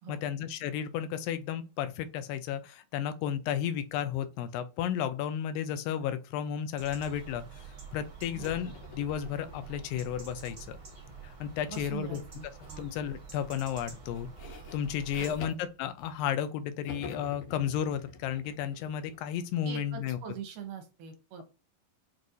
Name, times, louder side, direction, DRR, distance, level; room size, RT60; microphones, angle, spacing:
voice 1, 0.1-7.4 7.9-10.8 11.2-12.2 12.8-14.3 14.7-20.2, left 9 dB, 85° left, 2.3 m, -33 dB
sound 1, 6.8-15.4, right 6 dB, 35° right, 1.5 m, -47 dB
sound 2, 8.4-11.7 12.6-12.9 13.3-16.5 16.8-20.4, left 5 dB, 65° left, 1.8 m, -49 dB
voice 2, 11.7-12.9 15.2-15.4 19.6-21.4, right 7 dB, 75° right, 2.3 m, -43 dB
6.3 x 2.5 x 2.7 m
omnidirectional pair, 4.0 m